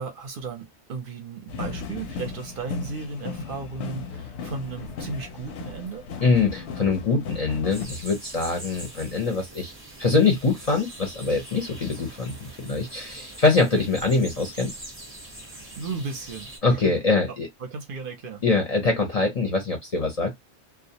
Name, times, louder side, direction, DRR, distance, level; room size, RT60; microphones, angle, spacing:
voice 1, 0.0-6.1 13.7-13.9 15.5-16.9 17.6-18.4, right 4 dB, 60° right, 0.7 m, -35 dB
sound 1, 1.5-7.9, left 5 dB, 85° left, 0.9 m, -36 dB
voice 2, 6.2-9.7 10.0-14.8 16.6-17.5 18.4-20.3, left 3 dB, 45° left, 0.6 m, -23 dB
sound 2, 7.7-16.6, right 1 dB, 15° right, 0.5 m, -43 dB
2.3 x 2.0 x 2.7 m
omnidirectional pair, 1.1 m